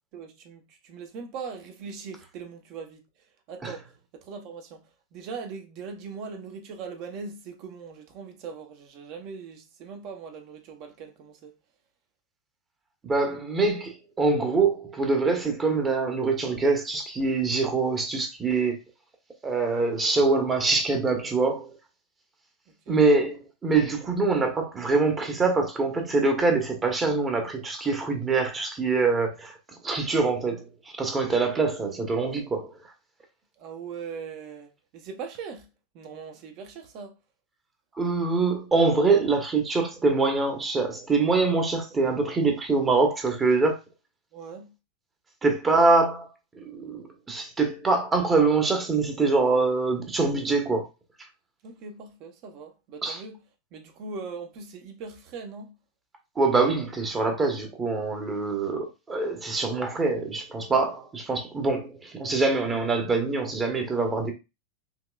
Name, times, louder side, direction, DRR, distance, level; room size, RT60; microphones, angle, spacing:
voice 1, 0.1-3.1 3.5-11.6 22.7-23.0 33.6-35.7 35.9-37.1 44.3-44.7 51.6-53.4 53.7-55.8, right 5 dB, 40° right, 1.1 m, -40 dB
voice 2, 13.0-18.8 19.4-21.8 22.9-32.9 37.9-43.8 45.4-50.9 53.0-53.2 56.3-64.3, right 3 dB, 20° right, 1.1 m, -24 dB
5.7 x 3.1 x 2.4 m
figure-of-eight pair, 90°, 0 cm